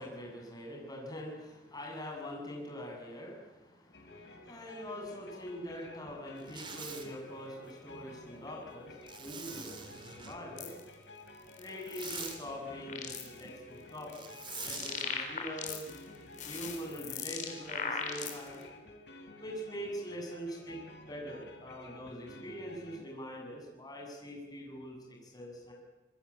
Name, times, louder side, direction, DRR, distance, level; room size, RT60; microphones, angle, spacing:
voice 1, 0.0-10.8 11.6-14.2 14.6-15.9 16.4-18.6 19.4-20.8 21.1-25.7, equal, 20° left, 0 dB, 7.7 m, -43 dB
sound 1, 3.9-23.0, left 2 dB, 70° left, 4.7 m, -52 dB
Zipper (clothing), 6.4-7.1 9.1-10.4 11.7-12.4 14.1-15.0, right 5 dB, 25° right, 3.2 m, -45 dB
sound 2, 10.6-10.8 11.5-12.4 12.7-13.4 14.0-16.0 16.3-18.6, left 6 dB, 40° left, 3.9 m, -39 dB
26.5 x 21.5 x 8.7 m, 1.1 s
head